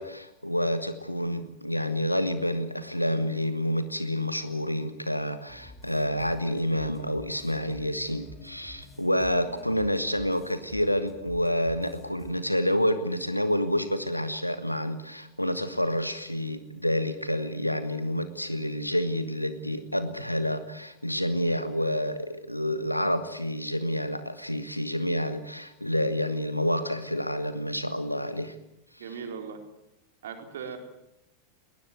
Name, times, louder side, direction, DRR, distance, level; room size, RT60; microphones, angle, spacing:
voice 1, 0.0-28.5 28.9-29.0, equal, 90° left, 11 dB, 1.5 m, -28 dB
sound 1, 5.5-12.3, left 2 dB, 15° left, 5.5 m, -49 dB
voice 2, 29.0-29.6 30.2-30.8, right 6 dB, 60° right, 5 dB, 4.2 m, -38 dB
21.0 x 19.5 x 9.4 m, 0.86 s
figure-of-eight pair, 90°, 0 cm